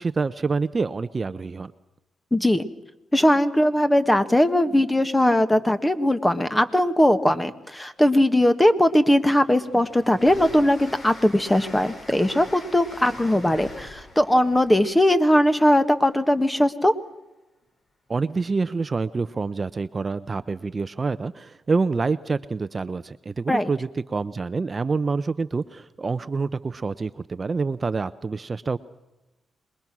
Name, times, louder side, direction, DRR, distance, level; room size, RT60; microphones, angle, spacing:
voice 1, 0.0-1.7 18.1-28.8, right 4 dB, 35° right, 13 dB, 0.7 m, -27 dB
voice 2, 2.3-2.7 3.1-16.9 23.5-23.7, left 1 dB, 10° left, 10 dB, 1.7 m, -20 dB
Train, 8.1-8.2 8.6-16.4, left 2 dB, 45° left, 5.1 m, -44 dB
27.0 x 21.5 x 6.2 m, 0.99 s
cardioid pair, 75°, 0 cm